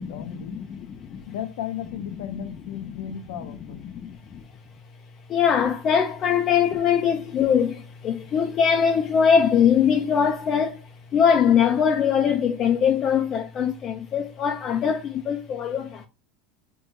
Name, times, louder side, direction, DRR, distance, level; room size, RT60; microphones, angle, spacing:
voice 1, 0.0-0.6 1.3-3.9, left 9 dB, 80° left, 0.6 m, -35 dB
voice 2, 0.5-1.2 2.8-3.0 3.4-3.5 3.9-4.4 5.3-16.1, left 7 dB, 35° left, 0.4 m, -22 dB
4.5 x 2.3 x 2.5 m
supercardioid pair, 135°, 0 cm